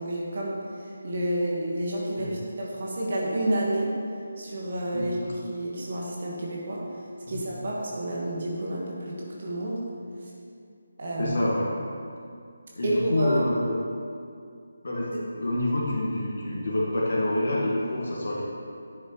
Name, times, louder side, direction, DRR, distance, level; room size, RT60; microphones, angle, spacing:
voice 1, 0.0-3.9 4.4-6.8 7.3-9.8 11.0-11.4 12.8-13.4, right 1 dB, 50° right, -4 dB, 1.6 m, -30 dB
voice 2, 4.9-5.4 7.2-7.4 11.2-11.7 12.7-13.8 14.8-18.4, left 1 dB, 55° left, -5 dB, 1.7 m, -27 dB
10.0 x 8.2 x 3.2 m, 2.3 s
figure-of-eight pair, 155°, 0 cm